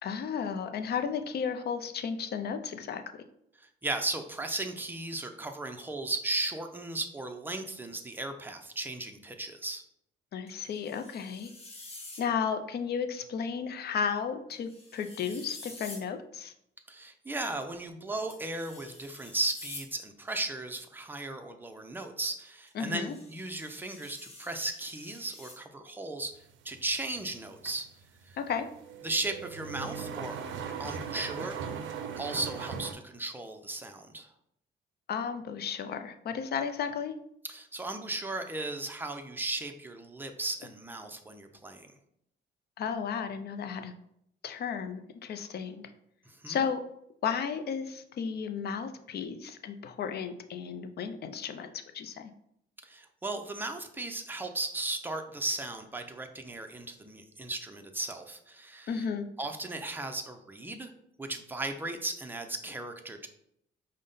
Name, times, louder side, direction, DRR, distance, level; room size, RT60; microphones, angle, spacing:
voice 1, 0.0-3.0 10.3-11.5 12.2-16.5 22.7-23.2 28.4-28.7 35.1-37.1 42.8-43.9 44.4-45.8 46.5-46.8 47.2-52.3 58.9-59.3, left 6 dB, 55° left, 8 dB, 0.5 m, -33 dB
voice 2, 3.6-9.8 16.9-26.3 26.6-27.9 29.0-30.4 30.8-34.3 37.5-41.9 46.3-46.6 52.8-59.1 59.4-60.9 61.2-63.3, right 2 dB, 10° right, 5 dB, 0.5 m, -36 dB
sound 1, 10.5-12.3 14.5-16.1 18.3-19.9 22.7-25.6, left 2 dB, 30° left, 1.0 m, -48 dB
sound 2, 26.4-32.9, right 6 dB, 75° right, 0.5 m, -39 dB
5.0 x 2.2 x 3.8 m, 0.75 s
cardioid pair, 90°, 20 cm